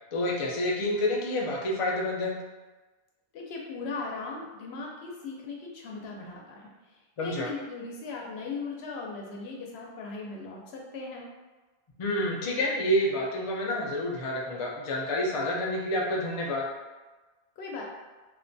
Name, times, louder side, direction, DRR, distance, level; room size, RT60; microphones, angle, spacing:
voice 1, 0.1-2.4 7.2-7.5 12.0-16.6, left 1 dB, 50° left, -2 dB, 0.4 m, -28 dB
voice 2, 3.3-11.3 17.6-17.8, left 4 dB, 85° left, -1 dB, 0.8 m, -38 dB
2.5 x 2.2 x 2.5 m, 1.2 s
omnidirectional pair, 1.0 m